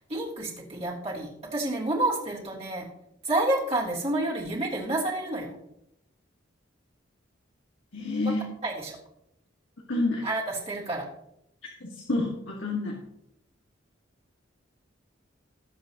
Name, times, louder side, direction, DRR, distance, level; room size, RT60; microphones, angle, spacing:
voice 1, 0.0-2.9 3.2-5.6 8.6-9.0 10.2-11.0, right 2 dB, 35° right, -5 dB, 3.2 m, -29 dB
voice 2, 7.9-8.4 9.9-10.2 11.8-13.0, left 2 dB, 75° left, -2 dB, 2.0 m, -28 dB
19.5 x 7.8 x 3.0 m, 0.79 s
head